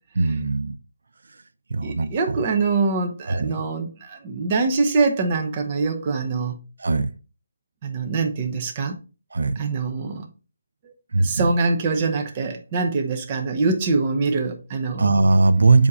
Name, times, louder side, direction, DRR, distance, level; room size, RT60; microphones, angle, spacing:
voice 1, 0.1-0.8 1.7-2.4 3.3-3.5 6.8-7.1 9.3-9.6 11.1-11.5 15.0-15.9, right 3 dB, 75° right, 0.7 m, -19 dB
voice 2, 1.8-6.6 7.8-9.0 9.6-10.3 11.2-15.1, right 4 dB, 25° right, 0.9 m, -24 dB
7.3 x 2.9 x 4.7 m
hypercardioid pair, 170°, 0 cm